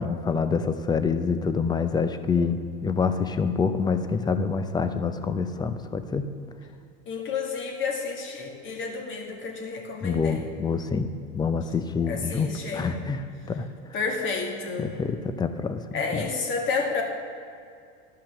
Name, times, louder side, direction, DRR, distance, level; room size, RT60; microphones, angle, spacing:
voice 1, 0.0-6.2 10.0-13.7 14.8-15.8 16.1-16.3, left 5 dB, 15° left, 10 dB, 0.5 m, -26 dB
voice 2, 7.1-10.4 12.1-13.0 13.9-14.9 15.9-17.0, left 4 dB, 40° left, 1 dB, 1.9 m, -30 dB
12.0 x 5.7 x 6.9 m, 2.3 s
supercardioid pair, 120°, 31 cm